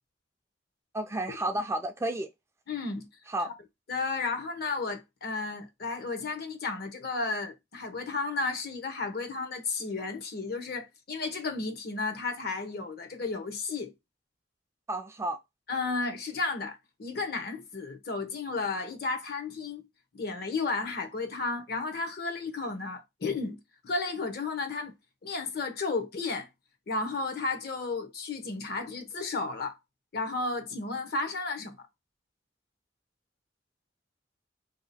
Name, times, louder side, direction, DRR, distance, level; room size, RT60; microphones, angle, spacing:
voice 1, 0.9-2.3 3.3-3.5 14.9-15.4, right 1 dB, 15° right, 0.4 m, -31 dB
voice 2, 2.7-3.1 3.9-13.9 15.7-19.8 20.1-24.9 25.2-26.5 26.9-29.8 30.1-31.8, left 3 dB, 60° left, 0.8 m, -33 dB
2.8 x 2.8 x 4.0 m
head